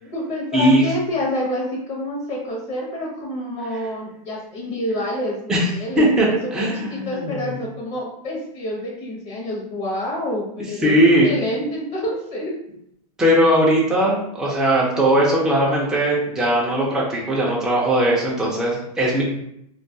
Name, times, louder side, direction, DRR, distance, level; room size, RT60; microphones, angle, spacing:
voice 1, 0.0-11.0 11.2-12.5, left 1 dB, 35° left, -3 dB, 0.7 m, -28 dB
voice 2, 0.5-0.8 5.5-5.7 6.0-6.3 6.5-7.4 10.8-11.3 13.2-19.2, right 1 dB, 5° right, -5 dB, 0.4 m, -18 dB
2.3 x 2.2 x 2.6 m, 0.74 s
hypercardioid pair, 140°, 20 cm